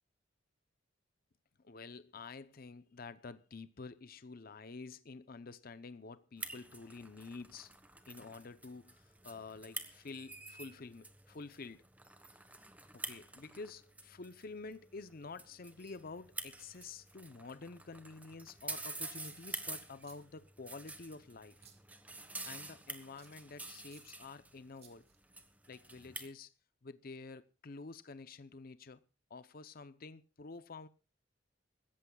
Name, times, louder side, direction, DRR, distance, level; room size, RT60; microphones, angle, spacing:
voice 1, 1.6-7.7 8.1-11.8 12.9-21.6 22.4-25.1 25.7-26.5 26.8-29.0 29.3-30.9, left 4 dB, 50° left, 0.7 m, -49 dB
sound 1, 6.4-26.3, right 2 dB, 10° right, 1.3 m, -49 dB
sound 2, 19.1-19.6 20.0-20.2 20.8-21.0 21.5-21.8 22.4-22.5 23.2-23.3 23.9-24.0 24.7-25.3, right 7 dB, 35° right, 2.3 m, -61 dB
25.0 x 14.0 x 2.3 m
head